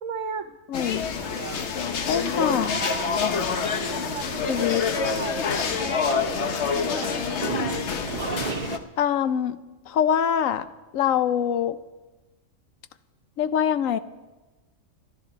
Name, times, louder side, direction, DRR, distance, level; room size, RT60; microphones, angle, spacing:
voice 1, 0.0-0.5 3.8-7.5, right 6 dB, 70° right, 6 dB, 1.3 m, -36 dB
voice 2, 0.7-1.1 2.1-2.8 4.5-4.8 9.0-9.6 9.9-11.8 13.4-14.0, left 9 dB, 90° left, 13 dB, 1.1 m, -24 dB
sound 1, 0.7-8.8, left 5 dB, 60° left, 1.1 m, -27 dB
sound 2, 1.2-8.8, right 6 dB, 45° right, 0.7 m, -37 dB
sound 3, 2.6-4.0 7.7-8.0, right 5 dB, 20° right, 1.9 m, -37 dB
22.5 x 12.5 x 4.0 m, 1.2 s
omnidirectional pair, 1.3 m